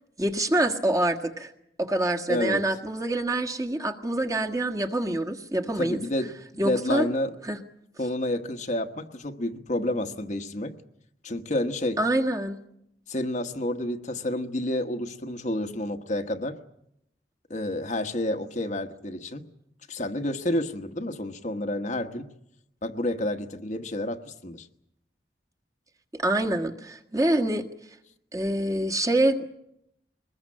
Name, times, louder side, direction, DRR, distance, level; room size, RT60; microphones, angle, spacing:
voice 1, 0.2-1.5 1.8-7.1 7.4-7.6 12.0-12.6 26.2-27.6 28.3-29.4, right 1 dB, 20° right, 2 dB, 1.6 m, -26 dB
voice 2, 2.3-2.6 5.8-7.3 8.0-10.7 11.2-12.0 13.1-16.6 17.5-19.5 19.9-22.3 22.8-24.7, left 1 dB, 45° left, 6 dB, 1.2 m, -29 dB
23.0 x 20.5 x 8.6 m, 0.77 s
head